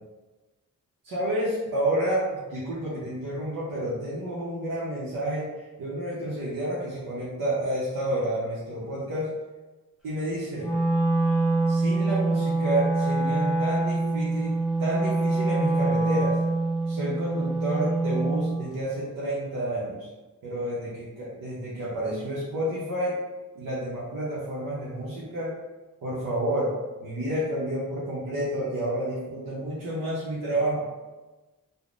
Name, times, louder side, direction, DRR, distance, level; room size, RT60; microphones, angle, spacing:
voice 1, 1.0-5.5 5.8-9.3 10.0-10.7 11.7-14.5 14.8-16.4 16.9-20.1 20.4-23.2 23.5-25.5 26.0-26.7 27.0-30.8, right 1 dB, 90° right, -8 dB, 0.8 m, -30 dB
Wind instrument woodwind instrument, 10.6-18.6, right 2 dB, ahead, 0.7 m, -25 dB
3.5 x 2.1 x 2.4 m, 1.2 s
wide cardioid pair, 105°, 34 cm